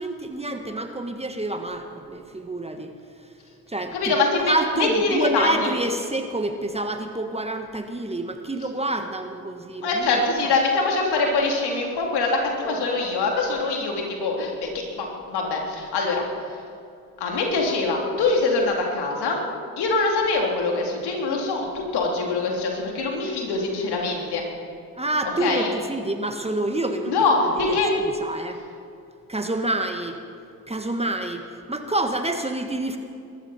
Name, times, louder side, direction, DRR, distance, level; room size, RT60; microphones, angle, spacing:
voice 1, 0.0-2.9 3.7-4.2 4.5-10.4 24.9-28.6 29.3-30.2 30.7-33.0, right 2 dB, 15° right, 6 dB, 1.5 m, -28 dB
voice 2, 3.9-5.7 9.8-16.2 17.2-19.4 19.8-24.4 25.4-25.7 27.1-27.9, left 3 dB, 65° left, 0 dB, 3.4 m, -23 dB
22.0 x 13.5 x 4.4 m, 2.6 s
hypercardioid pair, 55°, 43 cm